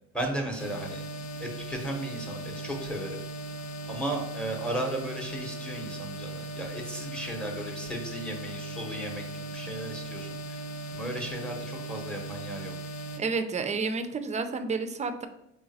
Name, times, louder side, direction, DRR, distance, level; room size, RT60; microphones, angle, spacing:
voice 1, 0.1-1.0 1.4-3.2 3.9-10.6 10.9-12.7, right 1 dB, 5° left, 1 dB, 0.8 m, -35 dB
sound 1, 0.6-13.2, right 2 dB, 65° left, 0.5 m, -38 dB
voice 2, 13.2-15.3, right 4 dB, 25° right, 8 dB, 0.4 m, -30 dB
3.8 x 3.2 x 2.6 m, 0.85 s
cardioid pair, 90°, 30 cm